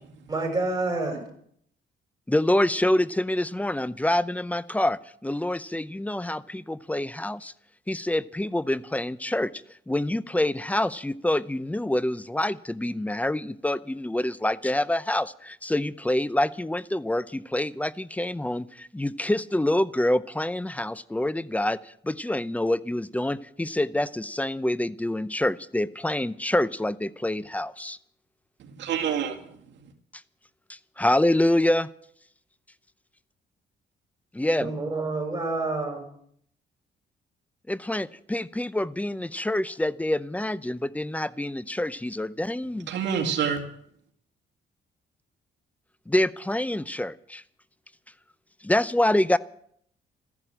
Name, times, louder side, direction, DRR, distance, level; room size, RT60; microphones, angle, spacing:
voice 1, 0.3-1.2 34.6-36.0, right 2 dB, 20° right, 1 dB, 6.7 m, -28 dB
voice 2, 2.3-7.5 7.9-9.5 9.9-28.0 30.7-31.9 34.3-34.7 37.7-42.9 46.1-47.4 48.6-49.4, left 1 dB, 10° left, 18 dB, 0.6 m, -26 dB
voice 3, 28.6-29.9 42.9-43.6, right 7 dB, 75° right, 2 dB, 2.2 m, -28 dB
14.0 x 11.0 x 9.0 m, 0.66 s
cardioid pair, 100°, 19 cm